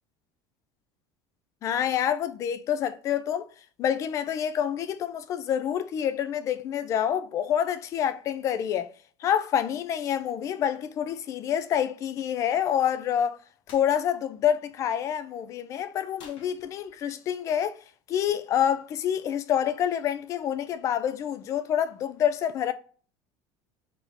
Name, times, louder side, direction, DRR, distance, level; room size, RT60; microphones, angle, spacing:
voice 1, 1.6-3.5 3.8-8.9 9.2-13.4 13.7-17.8 18.1-22.7, left 9 dB, 30° left, 0.4 m, -27 dB
sound 1, 13.7-13.9 16.2-17.1, left 6 dB, 50° left, 0.9 m, -51 dB
3.7 x 3.5 x 3.9 m
cardioid pair, 180°, 10 cm